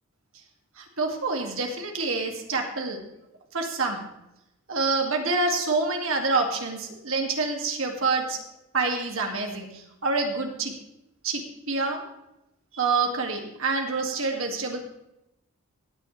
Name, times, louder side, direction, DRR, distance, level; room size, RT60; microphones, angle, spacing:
voice 1, 0.8-3.0 3.5-4.0 4.7-8.4 8.7-10.7 11.2-11.4 11.7-12.0 12.7-14.8, right 3 dB, 65° right, 2 dB, 2.1 m, -27 dB
17.0 x 9.6 x 3.2 m, 0.88 s
head